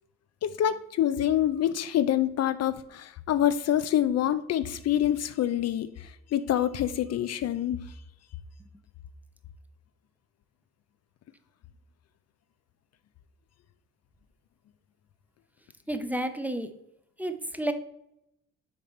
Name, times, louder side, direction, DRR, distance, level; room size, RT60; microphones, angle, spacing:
voice 1, 0.4-7.9, left 11 dB, 55° left, 13 dB, 0.5 m, -26 dB
voice 2, 15.9-16.7 17.2-17.7, right 1 dB, 5° right, 9 dB, 0.6 m, -31 dB
6.7 x 4.1 x 4.3 m, 0.81 s
cardioid pair, 90°, 30 cm